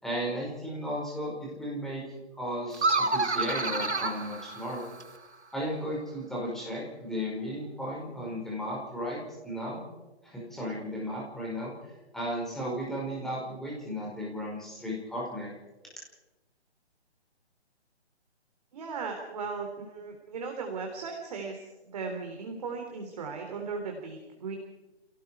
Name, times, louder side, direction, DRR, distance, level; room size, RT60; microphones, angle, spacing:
voice 1, 0.0-2.0 2.4-4.8 5.5-9.8 10.2-11.7 12.1-15.6, equal, ahead, -4 dB, 5.2 m, -35 dB
sound 1, 2.7-5.2, right 3 dB, 90° right, 2.1 m, -29 dB
voice 2, 18.7-24.6, right 4 dB, 35° right, 3 dB, 3.5 m, -37 dB
29.5 x 18.5 x 4.8 m, 1.1 s
figure-of-eight pair, 150°, 33 cm